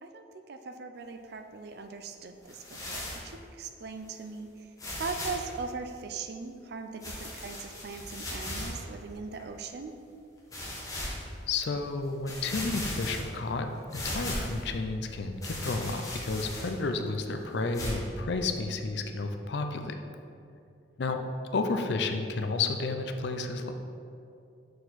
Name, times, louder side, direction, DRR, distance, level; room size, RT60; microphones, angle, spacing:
voice 1, 0.0-9.9 21.1-21.2, right 4 dB, 55° right, 6 dB, 0.4 m, -40 dB
sound 1, 2.5-3.3 4.1-4.2 4.8-5.5 7.0-8.8 9.4-9.5 10.5-11.2 11.8-11.9 12.3-13.5 13.9-14.7 15.4-16.9 17.7-17.9, left 1 dB, 20° left, 1.1 m, -37 dB
voice 2, 11.5-19.9 21.0-21.2 21.5-23.7, left 3 dB, 60° left, 6 dB, 0.5 m, -31 dB
6.5 x 4.4 x 4.1 m, 2.5 s
head